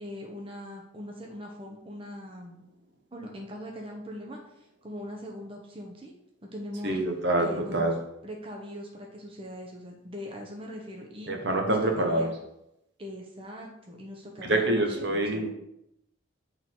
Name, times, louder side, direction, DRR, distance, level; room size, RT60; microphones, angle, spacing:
voice 1, 0.0-2.6 3.1-6.1 6.4-6.9 7.4-7.9 8.2-11.3 11.7-12.3 13.0-15.5, left 1 dB, 25° right, 0 dB, 1.0 m, -41 dB
voice 2, 6.8-8.0 11.2-12.3 14.4-15.5, right 1 dB, 60° right, 3 dB, 1.1 m, -26 dB
8.3 x 4.0 x 4.6 m, 0.82 s
head